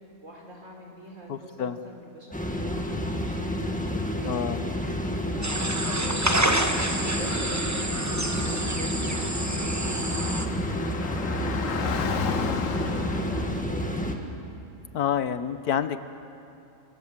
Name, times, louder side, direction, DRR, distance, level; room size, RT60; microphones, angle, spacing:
voice 1, 0.2-3.7 4.2-4.7 5.3-11.8 12.2-14.2, equal, 50° right, 0 dB, 4.9 m, -43 dB
voice 2, 1.3-1.8 4.3-4.6 14.9-16.0, left 8 dB, 70° left, 11 dB, 1.4 m, -28 dB
sound 1, 2.3-14.2, equal, 5° left, 1.7 m, -30 dB
sound 2, 5.4-10.5, right 1 dB, 10° right, 1.1 m, -28 dB
Car / Traffic noise roadway noise, 8.5-13.5, left 7 dB, 55° left, 1.3 m, -34 dB
27.5 x 24.0 x 7.4 m, 2.8 s
omnidirectional pair, 1.7 m